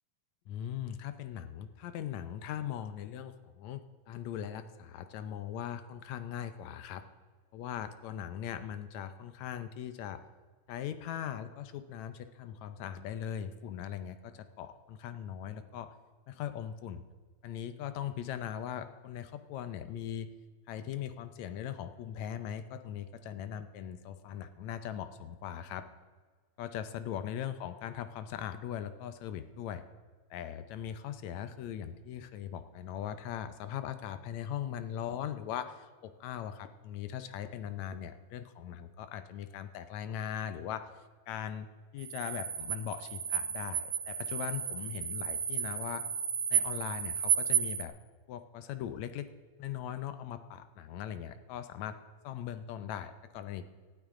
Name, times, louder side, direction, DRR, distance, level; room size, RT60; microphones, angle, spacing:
voice 1, 0.5-7.0 7.5-10.2 10.7-15.9 16.3-17.1 17.4-20.3 20.7-25.9 26.6-29.8 30.3-40.9 41.3-41.7 41.9-46.0 46.5-47.9 48.3-49.3 49.6-52.0 52.2-53.7, left 9 dB, 75° left, 11 dB, 1.9 m, -40 dB
sound 1, 42.0-47.8, right 8 dB, 85° right, 2.6 m, -33 dB
18.5 x 12.5 x 3.7 m, 1.5 s
omnidirectional pair, 3.6 m